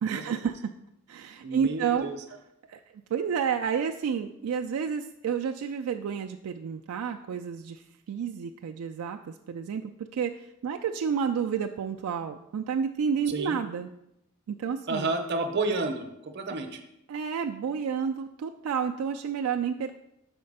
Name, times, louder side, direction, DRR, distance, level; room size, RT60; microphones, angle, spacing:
voice 1, 0.0-0.7 1.1-2.1 2.7-2.8 3.1-13.9 14.5-15.1 16.5-16.6 17.1-20.0, right 7 dB, 75° right, 5 dB, 0.3 m, -30 dB
voice 2, 1.4-2.2 13.3-13.6 14.9-16.8, right 3 dB, 50° right, 6 dB, 0.7 m, -30 dB
5.6 x 4.3 x 5.3 m, 0.83 s
head